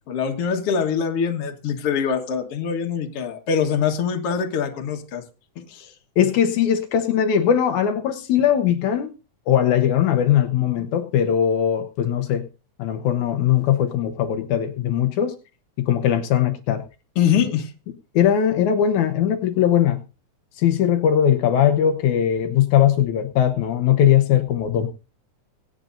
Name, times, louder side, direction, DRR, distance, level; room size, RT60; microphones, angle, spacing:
voice 1, 0.1-5.2 5.7-5.9 17.2-17.7, left 7 dB, 55° left, 4 dB, 2.4 m, -23 dB
voice 2, 6.2-9.1 9.5-12.5 12.8-15.3 15.8-16.8 18.1-20.0 20.6-24.9, left 9 dB, 80° left, 6 dB, 2.4 m, -20 dB
25.0 x 8.9 x 2.6 m, 0.31 s
omnidirectional pair, 3.4 m